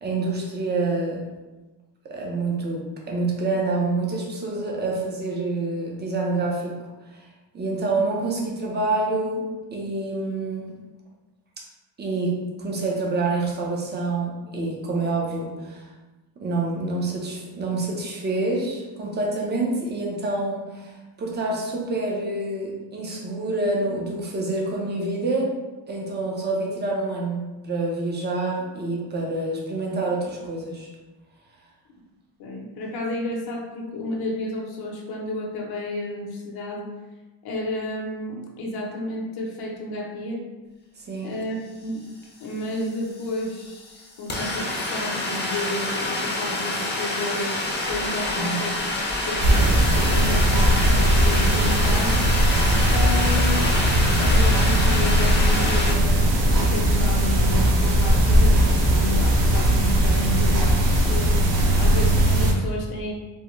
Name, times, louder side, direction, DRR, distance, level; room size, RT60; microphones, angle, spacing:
voice 1, 0.0-1.2 2.0-6.7 7.5-9.4 9.7-10.7 12.0-12.3 12.6-15.9 16.4-25.6 25.9-30.9 41.1-41.3 48.4-48.6, right 2 dB, 25° right, -2 dB, 0.6 m, -27 dB
voice 2, 32.4-36.9 37.4-40.4 41.2-42.0 42.4-47.6 47.8-48.8 49.2-52.2 52.9-53.8 54.2-60.8 61.1-61.4 61.7-63.1, left 2 dB, 60° left, -1 dB, 0.8 m, -31 dB
sound 1, 42.2-42.3 42.5-55.9, left 1 dB, 25° left, 0.6 m, -28 dB
sound 2, 47.6-54.3, equal, 45° right, 1.1 m, -38 dB
sound 3, 49.4-62.5, equal, 80° right, 0.8 m, -19 dB
3.5 x 2.1 x 3.0 m, 1.2 s
cardioid pair, 135°, 42 cm